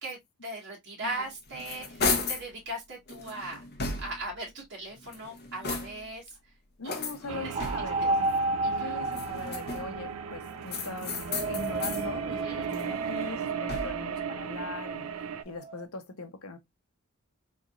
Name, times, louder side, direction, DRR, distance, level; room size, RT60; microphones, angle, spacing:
voice 1, 0.0-3.6 4.0-6.4 6.8-8.1 8.6-9.0 12.3-12.7, right 1 dB, 55° right, 1.9 m, -39 dB
sound 1, 1.2-2.5 3.1-4.4 5.0-6.2 6.8-8.1 9.0-10.0 10.7-12.1 12.5-14.1, left 3 dB, 50° left, 1.0 m, -35 dB
voice 2, 6.8-8.3 8.8-15.1 15.4-16.6, left 3 dB, 80° left, 0.9 m, -40 dB
sound 2, 7.3-15.4, right 7 dB, 90° right, 0.5 m, -37 dB
sound 3, 7.5-10.7 11.2-15.8, right 2 dB, 30° right, 0.3 m, -33 dB
3.9 x 3.4 x 2.4 m
head